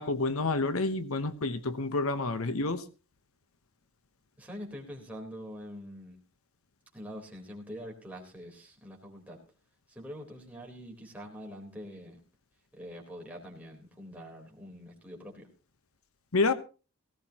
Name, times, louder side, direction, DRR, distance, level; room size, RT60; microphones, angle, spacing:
voice 1, 0.0-2.8 16.3-16.5, left 3 dB, 70° left, 11 dB, 1.0 m, -29 dB
voice 2, 4.4-6.2 6.9-9.4 9.9-12.2 12.7-15.5, equal, 5° right, -1 dB, 3.9 m, -44 dB
18.0 x 16.5 x 2.9 m, 0.34 s
head